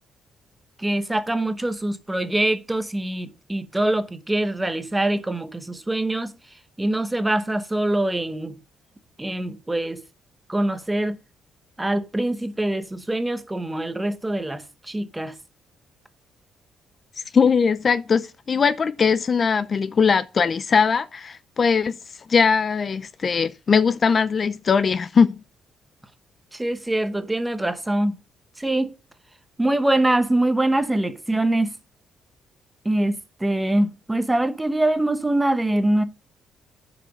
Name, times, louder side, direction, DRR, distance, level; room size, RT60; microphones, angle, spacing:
voice 1, 0.8-6.3 6.8-8.6 9.2-10.0 10.5-11.2 11.8-15.3 26.5-28.2 28.6-28.9 29.6-31.8 32.8-36.0, right 1 dB, 10° right, 1.0 m, -24 dB
voice 2, 17.3-22.0 22.3-25.4, left 5 dB, 40° left, 0.4 m, -20 dB
9.9 x 5.0 x 5.1 m
cardioid pair, 90°, 0 cm